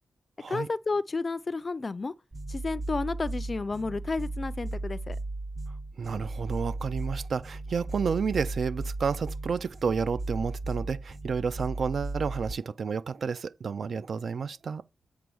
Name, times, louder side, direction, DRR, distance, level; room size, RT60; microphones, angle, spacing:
voice 1, 0.5-2.1 2.5-5.2, left 3 dB, 35° left, 0.4 m, -31 dB
sound 1, 2.3-12.5, right 2 dB, 30° right, 0.8 m, -36 dB
voice 2, 6.0-14.8, right 5 dB, 65° right, 0.4 m, -31 dB
8.2 x 3.5 x 6.2 m
wide cardioid pair, 115°, 0 cm